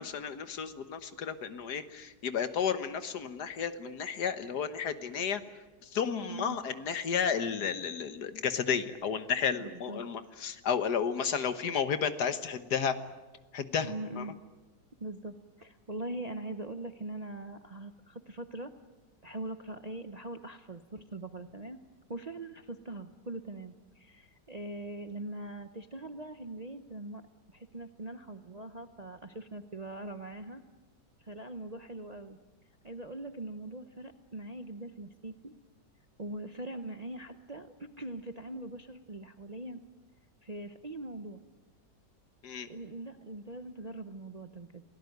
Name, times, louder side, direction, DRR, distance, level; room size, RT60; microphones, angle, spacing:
voice 1, 0.0-5.4 5.8-12.9 13.5-14.3 42.4-42.7, left 7 dB, 65° left, 11 dB, 1.8 m, -32 dB
voice 2, 9.6-10.4 13.8-14.4 15.0-18.7 19.2-21.8 22.1-27.2 27.5-30.6 31.2-32.4 32.8-35.5 36.2-39.8 40.4-41.4 42.7-44.8, right 2 dB, 35° right, 8 dB, 0.7 m, -42 dB
28.0 x 18.0 x 9.4 m, 1.2 s
omnidirectional pair, 1.9 m